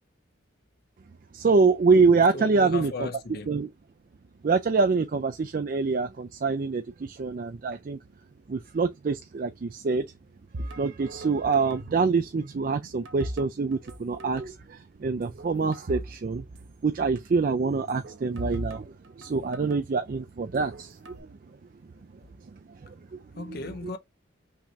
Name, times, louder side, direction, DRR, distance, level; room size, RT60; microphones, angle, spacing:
voice 1, 1.3-3.1 3.5-3.7 4.4-8.0 8.5-10.0 10.6-16.4 16.8-18.9 19.2-21.0 23.4-23.6, right 4 dB, 45° right, 0.4 m, -25 dB
voice 2, 2.3-3.5 23.4-24.0, left 3 dB, 55° left, 0.6 m, -36 dB
sound 1, 10.5-12.1 12.4-14.0 14.2-14.4 15.0-16.2 16.4-16.5 17.7-19.8 20.4-21.2, right 1 dB, 75° right, 0.8 m, -39 dB
5.8 x 3.2 x 2.5 m
head